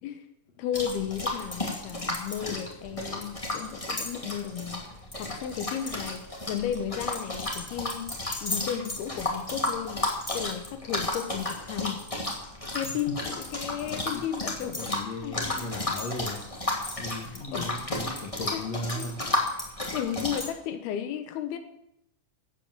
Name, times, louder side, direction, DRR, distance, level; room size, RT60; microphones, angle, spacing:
voice 1, 0.6-4.8 5.2-8.1 8.4-10.0 10.3-12.0 12.7-14.9 15.2-15.7 17.5-17.7 18.5-18.6 18.9-19.4 19.9-21.6, left 9 dB, 90° left, 8 dB, 3.1 m, -34 dB
sound 1, 0.7-20.5, left 2 dB, 10° left, 1.7 m, -33 dB
voice 2, 13.8-16.4 17.0-19.2, left 1 dB, 50° left, 3 dB, 2.4 m, -37 dB
15.0 x 8.5 x 7.4 m, 0.81 s
omnidirectional pair, 4.3 m